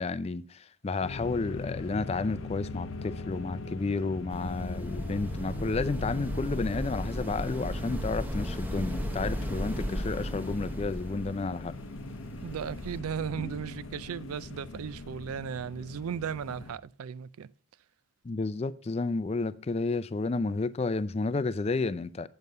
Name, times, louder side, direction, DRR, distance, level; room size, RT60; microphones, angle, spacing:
voice 1, 0.0-11.7 18.2-22.3, left 3 dB, 30° left, 0.4 m, -31 dB
sound 1, 1.0-16.8, left 2 dB, 65° left, 0.7 m, -40 dB
sound 2, 4.3-13.0, equal, 10° right, 0.9 m, -36 dB
voice 2, 12.4-17.5, right 7 dB, 90° right, 0.4 m, -36 dB
8.0 x 7.4 x 5.2 m
head